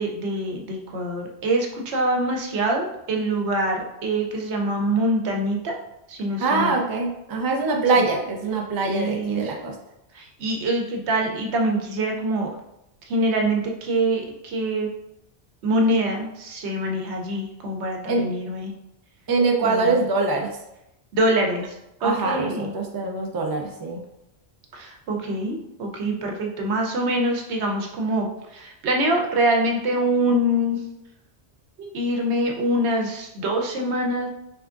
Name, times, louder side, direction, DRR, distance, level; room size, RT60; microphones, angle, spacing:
voice 1, 0.0-5.7 6.1-6.7 8.0-8.1 8.8-9.6 10.1-12.5 13.1-14.9 15.6-18.7 19.6-20.0 21.1-21.8 22.0-22.7 24.7-30.8 31.8-34.3, right 1 dB, 90° right, 1 dB, 1.0 m, -24 dB
voice 2, 6.4-9.7 18.1-18.2 19.3-20.5 22.0-24.0, right 3 dB, 35° right, 1 dB, 0.3 m, -23 dB
3.6 x 3.4 x 2.4 m, 0.86 s
omnidirectional pair, 1.1 m